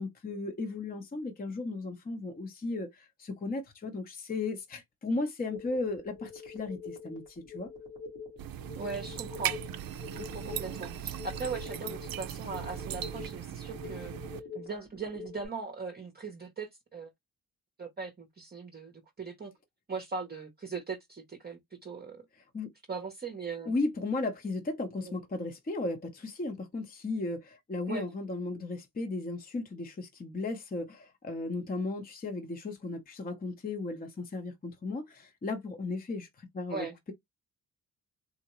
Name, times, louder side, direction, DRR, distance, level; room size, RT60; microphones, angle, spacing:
voice 1, 0.0-7.7 22.5-22.7 23.7-37.1, left 3 dB, 25° left, 0.7 m, -35 dB
sound 1, 5.5-15.5, left 4 dB, 85° left, 1.6 m, -45 dB
sound 2, 8.4-14.4, right 10 dB, 60° right, 0.5 m, -38 dB
voice 2, 8.8-9.6 10.1-14.1 14.5-17.1 17.8-19.5 19.9-22.2 22.9-23.7 25.0-25.2 27.9-28.1 36.7-37.0, right 4 dB, 25° right, 0.7 m, -39 dB
3.7 x 2.1 x 2.9 m
cardioid pair, 70°, 39 cm